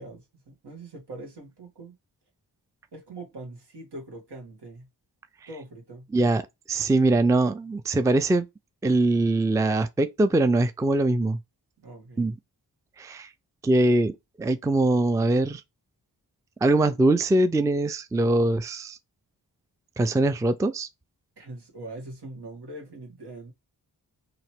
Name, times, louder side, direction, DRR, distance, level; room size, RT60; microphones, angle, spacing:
voice 1, 0.0-2.0 2.9-4.9 5.5-6.1 11.8-12.3 21.4-23.5, right 2 dB, 75° right, 1.8 m, -42 dB
voice 2, 6.1-6.4 6.7-8.5 8.8-11.4 12.2-12.4 13.0-13.3 13.6-15.6 16.6-19.0 20.0-20.9, right 2 dB, 10° right, 0.4 m, -22 dB
3.0 x 2.9 x 4.4 m
cardioid pair, 50°, 41 cm